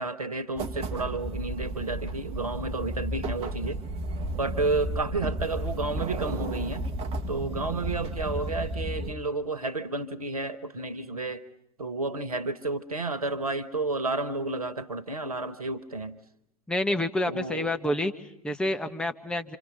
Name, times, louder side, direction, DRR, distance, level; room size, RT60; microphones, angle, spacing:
voice 1, 0.0-3.8 4.4-6.9 7.3-11.4 11.8-16.2 17.2-17.7, right 3 dB, 80° right, 15 dB, 1.5 m, -31 dB
sound 1, 0.6-9.1, right 2 dB, 30° right, 1.4 m, -33 dB
voice 2, 16.7-19.6, left 1 dB, 5° left, 6 dB, 1.4 m, -28 dB
29.0 x 27.0 x 5.7 m, 0.81 s
figure-of-eight pair, 85°, 19 cm